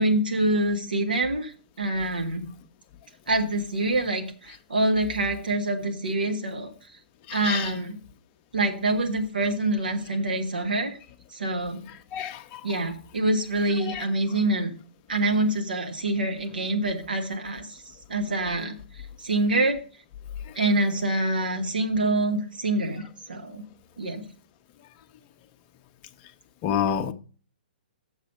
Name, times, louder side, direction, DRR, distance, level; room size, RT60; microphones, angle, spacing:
voice 1, 0.0-1.5 1.8-2.5 3.3-6.7 7.3-8.0 8.5-11.0 11.3-11.8 12.6-14.7 15.1-17.8 18.1-18.8 19.2-19.8 20.5-23.6 24.0-24.3, right 2 dB, 70° right, 1.6 m, -26 dB
voice 2, 7.3-7.7 12.1-12.6 13.9-14.0 26.6-27.1, left 9 dB, 30° left, 0.7 m, -28 dB
7.2 x 6.5 x 5.2 m
figure-of-eight pair, 120°, 5 cm